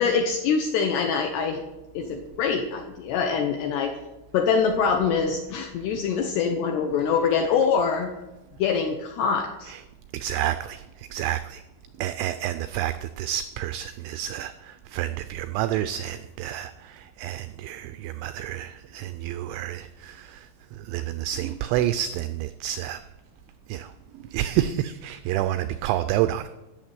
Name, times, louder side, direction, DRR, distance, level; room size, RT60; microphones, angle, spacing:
voice 1, 0.0-1.6 1.9-3.9 4.3-8.1 8.6-9.7, left 6 dB, 80° left, 4 dB, 2.4 m, -24 dB
voice 2, 10.1-11.6 12.0-23.0 23.7-26.5, right 12 dB, 90° right, 11 dB, 2.6 m, -29 dB
13.5 x 7.1 x 9.3 m, 1.0 s
omnidirectional pair, 6.0 m